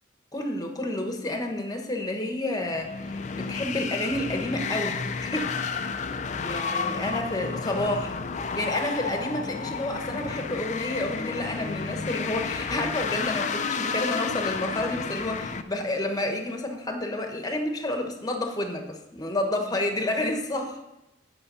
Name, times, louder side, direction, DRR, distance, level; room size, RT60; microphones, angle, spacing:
voice 1, 0.3-5.5 6.4-20.8, left 1 dB, 20° left, 4 dB, 1.1 m, -30 dB
sound 1, 2.7-15.6, left 5 dB, 40° left, 0.5 m, -31 dB
8.7 x 5.5 x 5.5 m, 0.95 s
head